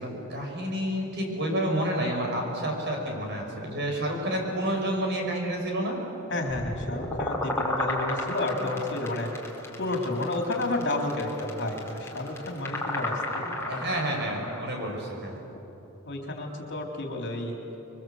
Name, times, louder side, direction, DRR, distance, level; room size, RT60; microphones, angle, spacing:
voice 1, 0.0-6.0 13.7-15.4, right 1 dB, 55° right, 1 dB, 6.1 m, -29 dB
voice 2, 6.3-9.3 9.8-13.8 16.1-17.6, left 2 dB, 55° left, 1 dB, 3.8 m, -31 dB
sound 1, 6.5-14.6, left 1 dB, 15° left, 3.4 m, -33 dB
28.0 x 23.5 x 8.1 m, 3.0 s
head